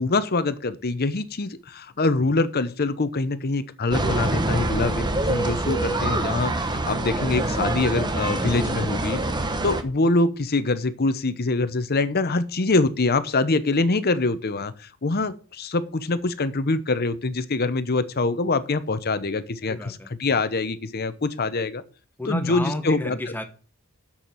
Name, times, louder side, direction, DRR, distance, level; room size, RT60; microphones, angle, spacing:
voice 1, 0.0-9.2 9.6-14.7 15.0-21.8 22.3-23.2, left 3 dB, 45° left, 13 dB, 0.8 m, -24 dB
sound 1, 3.9-9.8, right 1 dB, 20° right, 1.0 m, -25 dB
voice 2, 19.6-20.1 22.2-23.4, left 1 dB, 10° left, 7 dB, 1.1 m, -31 dB
7.3 x 6.9 x 7.5 m, 0.38 s
head